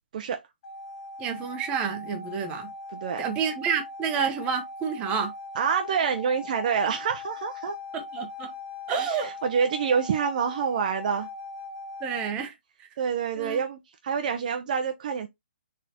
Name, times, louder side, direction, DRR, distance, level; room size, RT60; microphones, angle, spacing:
sound 1, 0.6-12.3, left 3 dB, 35° left, 1.4 m, -40 dB
voice 1, 1.2-2.7 3.2-5.3 7.9-8.5 8.9-9.3 12.0-12.5 13.4-13.6, right 6 dB, 20° right, 0.8 m, -29 dB
voice 2, 2.9-3.2 5.6-7.8 8.9-11.3 13.0-15.3, right 6 dB, 45° right, 0.6 m, -27 dB
4.0 x 3.7 x 2.8 m
hypercardioid pair, 150°, 6 cm